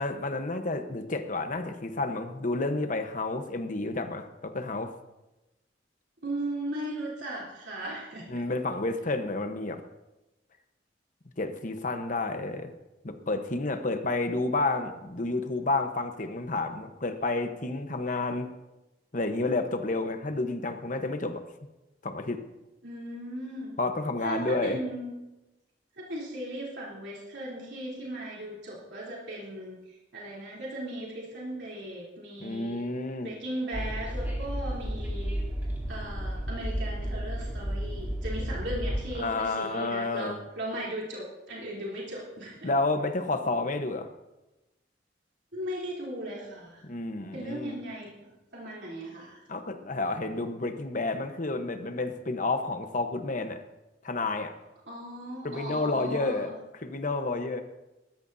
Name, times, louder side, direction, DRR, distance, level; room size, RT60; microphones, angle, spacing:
voice 1, 0.0-4.9 8.3-9.8 11.4-12.7 13.0-18.5 19.1-21.4 22.0-22.4 23.8-24.8 32.4-33.3 39.2-40.4 42.6-44.1 46.8-47.8 49.5-53.6 54.0-54.5 55.4-56.5 56.8-57.6, left 2 dB, 45° left, 7 dB, 1.1 m, -30 dB
voice 2, 6.2-8.4 22.8-23.8 24.2-25.2 26.0-32.8 33.2-35.4 35.9-42.7 45.5-46.8 47.3-49.4 54.9-56.6, right 1 dB, 75° right, -5 dB, 3.4 m, -37 dB
Train, 33.7-39.1, equal, 10° right, 2.4 m, -32 dB
19.5 x 13.5 x 2.7 m, 1.0 s
head